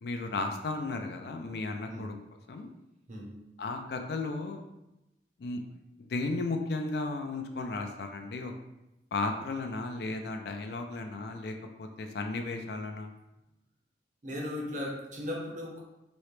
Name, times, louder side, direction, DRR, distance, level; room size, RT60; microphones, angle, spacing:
voice 1, 0.0-2.1 2.5-2.7 3.6-4.6 5.4-5.6 6.0-8.5 9.1-13.1, left 3 dB, 55° left, 5 dB, 0.4 m, -34 dB
voice 2, 3.1-3.4 14.2-15.8, left 1 dB, 40° right, -1 dB, 0.7 m, -37 dB
3.1 x 2.8 x 3.1 m, 0.93 s
head